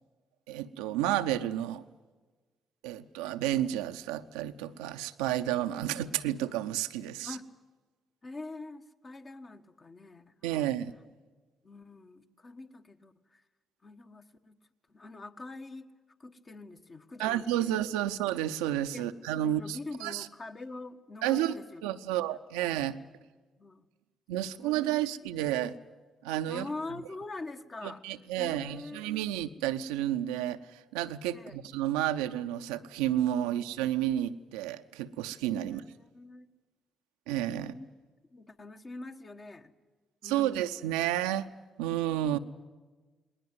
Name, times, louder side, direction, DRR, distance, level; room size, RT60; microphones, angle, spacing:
voice 1, 0.5-1.8 2.8-7.4 10.4-10.9 17.2-20.3 21.2-21.5 21.8-23.0 24.3-25.8 26.2-26.7 27.8-35.8 37.3-37.7 40.2-41.5 41.8-42.4, right 12 dB, 75° right, 9 dB, 0.7 m, -31 dB
voice 2, 8.2-10.7 11.6-13.4 13.8-14.6 14.9-15.9 16.2-17.7 18.9-19.1 19.4-21.8 22.3-22.4 23.0-23.1 23.6-23.9 24.4-24.9 26.5-28.0 28.4-29.0 31.3-31.6 33.4-33.6 35.6-36.5 37.6-37.9 38.3-39.7 40.2-40.6 42.2-42.4, left 2 dB, 35° left, 6 dB, 1.5 m, -44 dB
20.0 x 19.5 x 9.4 m, 1.3 s
figure-of-eight pair, 40°, 0 cm